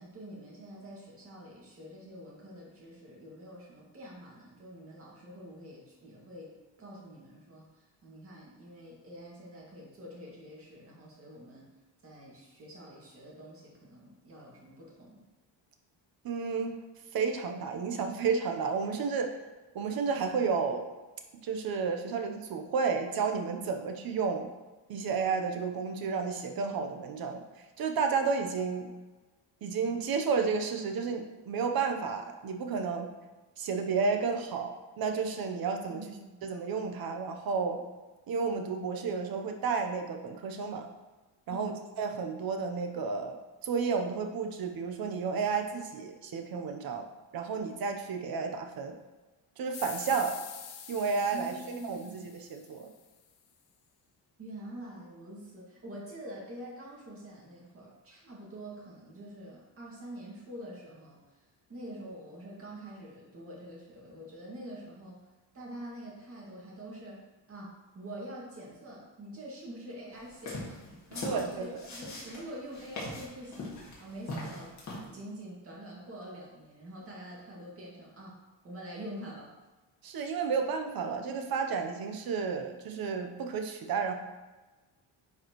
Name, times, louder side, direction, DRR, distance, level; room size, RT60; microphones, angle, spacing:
voice 1, 0.0-11.7 12.0-15.2 35.9-36.4 41.5-41.8 51.3-52.3 54.4-61.4 61.7-65.2 65.5-67.2 67.5-70.8 71.1-74.7 75.1-78.4 78.6-79.5, right 1 dB, 30° right, -4 dB, 2.1 m, -46 dB
voice 2, 16.2-16.8 17.1-19.3 19.7-20.9 21.4-24.5 24.9-27.4 27.8-28.9 29.6-33.1 33.6-36.0 36.4-37.8 38.3-40.9 41.5-41.7 42.0-43.4 43.6-47.0 47.3-48.9 49.6-50.4 50.9-52.9 71.2-71.7 80.0-84.1, right 5 dB, 50° right, 4 dB, 0.9 m, -31 dB
sound 1, 49.7-53.1, left 8 dB, 65° left, 0.9 m, -46 dB
sound 2, 70.3-75.1, left 2 dB, 40° left, 2.1 m, -40 dB
9.7 x 4.7 x 3.1 m, 1.2 s
cardioid pair, 155°, 44 cm